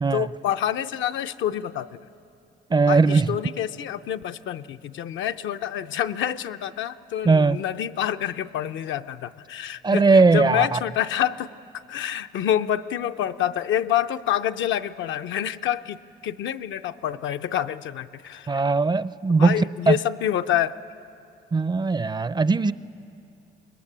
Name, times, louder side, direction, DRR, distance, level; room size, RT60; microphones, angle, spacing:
voice 1, 0.1-2.0 2.9-16.0 16.2-18.6 19.4-20.8, left 11 dB, 75° left, 9 dB, 0.6 m, -27 dB
voice 2, 2.7-3.3 7.2-7.6 9.8-10.8 18.5-20.0 21.5-22.7, right 4 dB, 20° right, 16 dB, 0.4 m, -19 dB
24.5 x 20.5 x 7.4 m, 2.7 s
cardioid pair, 90°, 20 cm